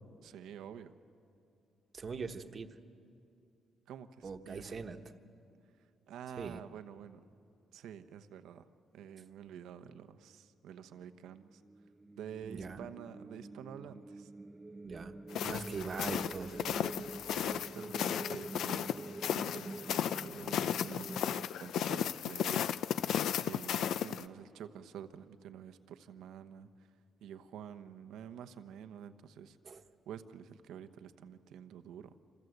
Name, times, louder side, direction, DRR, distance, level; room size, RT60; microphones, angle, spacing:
voice 1, 0.2-0.9 3.9-4.8 6.1-7.2 7.7-8.7 8.9-11.6 12.1-14.3 17.3-22.7 23.4-26.9 27.2-32.1, right 8 dB, 85° right, 10 dB, 1.0 m, -49 dB
voice 2, 1.9-2.7 4.2-5.0 6.4-6.6 12.4-12.8 14.8-15.1 15.4-16.8 29.6-29.8, right 5 dB, 40° right, 7 dB, 1.2 m, -41 dB
sound 1, 11.4-21.5, right 2 dB, 15° right, 0.5 m, -46 dB
sound 2, 15.3-24.2, left 9 dB, 75° left, 0.5 m, -35 dB
27.0 x 26.5 x 8.0 m, 2.7 s
cardioid pair, 115°, 0 cm